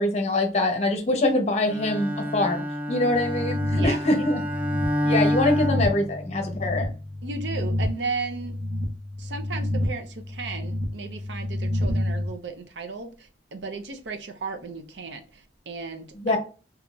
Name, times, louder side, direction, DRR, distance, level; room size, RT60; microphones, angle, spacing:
voice 1, 0.0-2.6 2.9-4.4 5.0-6.9 16.2-16.4, left 2 dB, 40° left, 0.7 m, -24 dB
Bowed string instrument, 1.7-6.6, equal, 10° right, 0.4 m, -28 dB
sound 1, 3.1-12.3, left 1 dB, 35° right, 0.9 m, -30 dB
voice 2, 7.2-8.6 9.2-16.4, right 4 dB, 70° right, 0.6 m, -35 dB
3.7 x 2.8 x 2.3 m
head